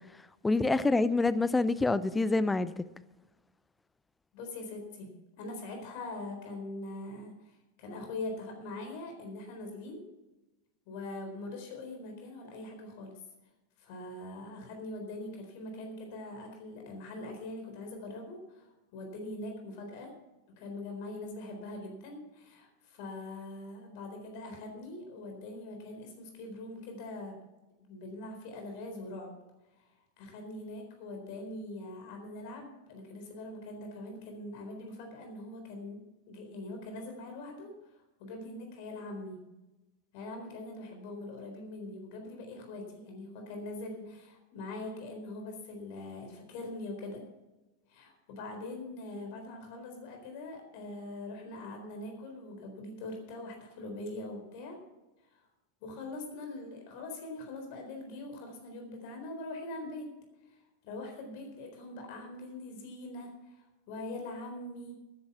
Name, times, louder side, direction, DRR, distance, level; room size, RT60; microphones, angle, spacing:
voice 1, 0.4-2.8, left 3 dB, 10° left, 0.6 m, -26 dB
voice 2, 4.3-5.1 5.4-7.3 7.8-10.0 10.9-13.1 13.8-20.1 20.6-27.3 27.8-29.4 29.8-29.9 30.2-36.0 36.3-37.7 38.2-39.4 40.1-47.2 47.9-54.8 55.3-55.4 55.8-60.1 60.8-65.0, left 2 dB, 45° left, 4.1 m, -42 dB
12.5 x 10.5 x 5.9 m
figure-of-eight pair, 90°, 0 cm